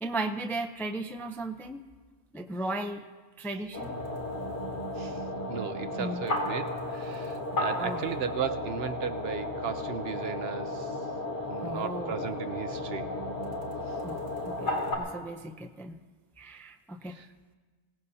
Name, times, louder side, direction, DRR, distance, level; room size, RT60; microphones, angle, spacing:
voice 1, 0.0-1.8 2.3-3.0 3.4-4.0 6.0-6.3 7.8-8.0 11.6-12.3 14.0-16.0 16.4-17.2, right 2 dB, 5° left, 5 dB, 0.4 m, -36 dB
sound 1, 3.7-14.9, left 2 dB, 75° left, 3.0 m, -34 dB
voice 2, 5.0-11.0 11.5-13.1 17.1-17.3, right 7 dB, 65° right, 10 dB, 0.8 m, -36 dB
24.5 x 17.5 x 2.8 m, 1.4 s
omnidirectional pair, 1.2 m